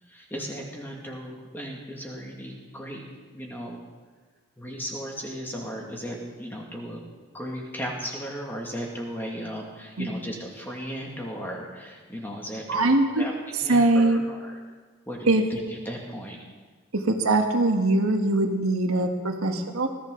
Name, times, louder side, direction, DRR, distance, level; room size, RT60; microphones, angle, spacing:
voice 1, 0.1-3.0 3.3-3.8 4.6-7.0 7.3-13.3 13.6-14.6 15.1-16.4, equal, 10° left, -1 dB, 2.1 m, -36 dB
voice 2, 12.7-13.2 13.7-14.2 15.3-15.4 16.9-19.9, right 2 dB, 80° right, 3 dB, 1.6 m, -22 dB
20.0 x 14.0 x 3.9 m, 1.4 s
head